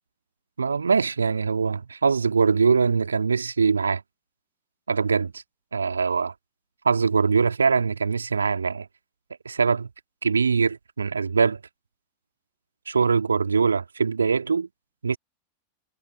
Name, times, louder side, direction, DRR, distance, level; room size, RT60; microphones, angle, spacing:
voice 1, 0.6-4.0 4.9-5.4 5.7-6.3 6.8-8.9 9.5-9.9 10.2-11.6 12.9-14.7 15.0-15.2, right 5 dB, 75° right, 2.1 m, -22 dB
figure-of-eight pair, 90°, 0 cm